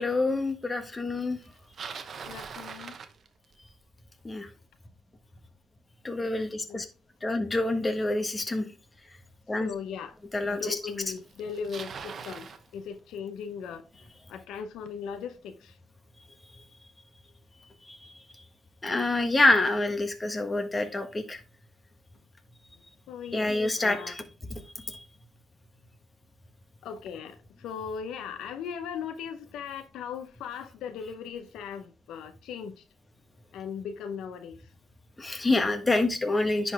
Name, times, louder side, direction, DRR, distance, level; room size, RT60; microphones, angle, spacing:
voice 1, 0.0-1.4 4.2-4.5 6.0-6.9 7.2-8.7 9.5-9.7 10.3-10.8 17.9-18.0 18.8-21.4 23.3-24.2 24.5-25.0 35.2-36.7, left 2 dB, 20° left, 1.4 m, -27 dB
Bicycle, 1.4-3.8 8.8-8.9 9.7-9.8 10.9-11.0 11.2-12.6, right 6 dB, 50° right, 0.8 m, -41 dB
voice 2, 2.3-2.9 6.7-6.8 9.6-10.2 10.4-13.9 14.3-15.8 23.1-24.1 26.8-32.8 33.5-34.6, left 6 dB, 85° left, 0.7 m, -38 dB
10.0 x 4.2 x 3.4 m
cardioid pair, 90°, 0 cm